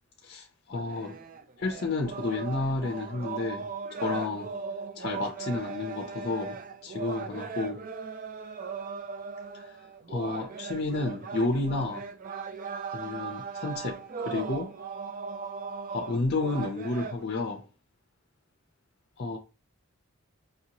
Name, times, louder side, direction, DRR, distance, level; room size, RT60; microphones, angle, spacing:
voice 1, 0.2-1.1 1.6-4.5 5.0-7.8 9.5-9.7 10.1-12.0 12.9-14.0 14.3-14.7 15.9-17.6 19.2-19.4, left 3 dB, 45° left, 0.5 m, -31 dB
sound 1, 0.7-17.2, right 5 dB, 40° right, 0.4 m, -38 dB
5.3 x 2.8 x 2.8 m
head